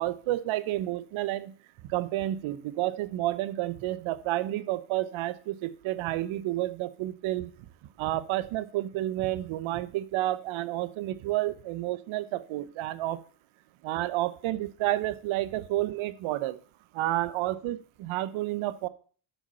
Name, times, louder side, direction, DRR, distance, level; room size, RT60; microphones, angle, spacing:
voice 1, 0.0-1.5 1.9-7.5 8.0-13.2 13.8-16.6 16.9-18.9, right 15 dB, 70° right, 15 dB, 0.9 m, -30 dB
8.3 x 5.9 x 5.5 m, 0.43 s
supercardioid pair, 90°, 49 cm